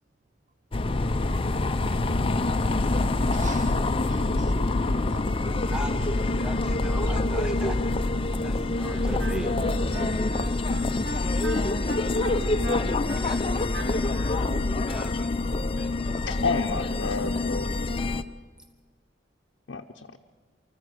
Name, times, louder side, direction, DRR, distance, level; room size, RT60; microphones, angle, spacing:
sound 1, 0.7-18.2, left 2 dB, 30° left, 0.6 m, -26 dB
voice 1, 3.3-5.3, right 4 dB, 40° right, 15 dB, 0.6 m, -44 dB
voice 2, 6.4-7.8 8.4-10.3 13.2-13.8 14.9-15.3 15.8-15.9 16.1-16.3, equal, 5° right, 6 dB, 0.7 m, -38 dB
Wind instrument woodwind instrument, 8.8-14.4, right 1 dB, 70° right, 2.8 m, -37 dB
voice 3, 16.3-17.7 19.7-20.2, left 4 dB, 70° left, 2 dB, 0.7 m, -30 dB
24.5 x 14.0 x 7.8 m, 1.5 s
head